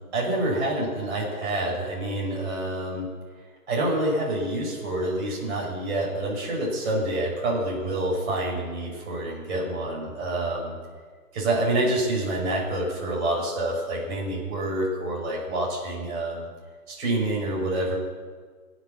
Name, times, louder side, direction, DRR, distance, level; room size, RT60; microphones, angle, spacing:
voice 1, 0.1-3.1 3.7-10.8 11.3-16.5 16.9-18.0, right 1 dB, 45° right, -3 dB, 6.4 m, -27 dB
22.0 x 8.3 x 7.3 m, 1.5 s
figure-of-eight pair, 145°, 47 cm